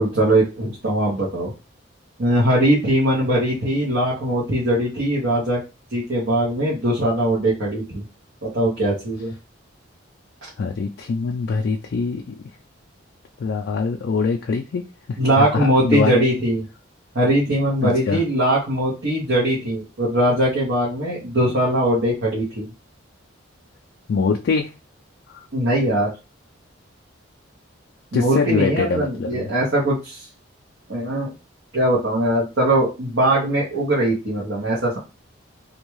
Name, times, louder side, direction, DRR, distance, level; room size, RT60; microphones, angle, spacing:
voice 1, 0.0-1.5 2.2-5.6 5.9-8.0 8.4-9.3 15.2-16.6 17.1-22.7 25.5-26.1 28.1-30.2 30.9-31.3 31.7-35.0, right 1 dB, 60° right, -7 dB, 1.0 m, -21 dB
voice 2, 10.6-12.3 13.4-16.2 17.8-18.2 24.1-24.7 28.1-29.5, left 4 dB, 55° left, 1 dB, 0.3 m, -23 dB
2.6 x 2.2 x 3.0 m, 0.28 s
head